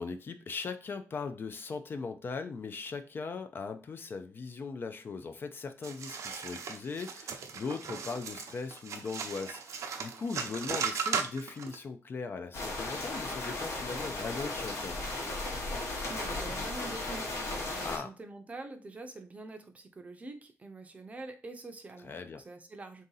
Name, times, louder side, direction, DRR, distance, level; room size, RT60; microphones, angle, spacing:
voice 1, 0.0-15.0 17.8-18.1 22.0-22.4, left 4 dB, 45° left, 9 dB, 0.4 m, -39 dB
sound 1, 5.8-11.8, right 6 dB, 90° right, 0.6 m, -37 dB
sound 2, 12.5-18.0, left 2 dB, 70° left, 1.1 m, -36 dB
voice 2, 16.1-23.1, right 2 dB, 25° right, 6 dB, 0.5 m, -45 dB
3.6 x 2.7 x 3.9 m, 0.35 s
wide cardioid pair, 150°, 5 cm